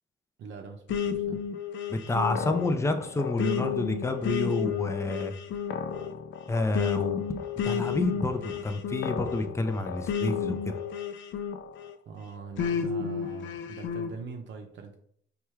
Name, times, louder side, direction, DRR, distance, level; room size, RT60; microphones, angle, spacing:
voice 1, 0.4-1.4 12.1-15.0, right 5 dB, 65° right, 3 dB, 0.6 m, -43 dB
sound 1, 0.9-12.0 12.6-14.1, left 7 dB, 70° left, 0.4 m, -32 dB
voice 2, 1.9-5.3 6.5-7.2 7.6-10.8, left 2 dB, 15° left, 8 dB, 0.4 m, -29 dB
4.4 x 2.4 x 3.1 m, 0.65 s
cardioid pair, 90°, 20 cm